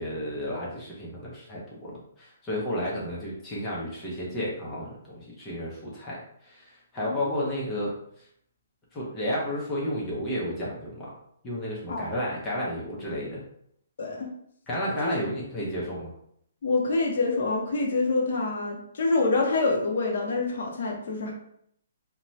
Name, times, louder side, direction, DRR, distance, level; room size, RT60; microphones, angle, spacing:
voice 1, 0.0-7.9 8.9-11.1 11.4-13.4 14.7-16.1, equal, 15° left, -5 dB, 0.6 m, -32 dB
voice 2, 7.0-7.4 11.9-12.1 14.0-14.3 15.0-15.1 16.6-21.3, left 3 dB, 55° left, -1 dB, 0.6 m, -26 dB
2.6 x 2.1 x 3.0 m, 0.70 s
hypercardioid pair, 165°, 0 cm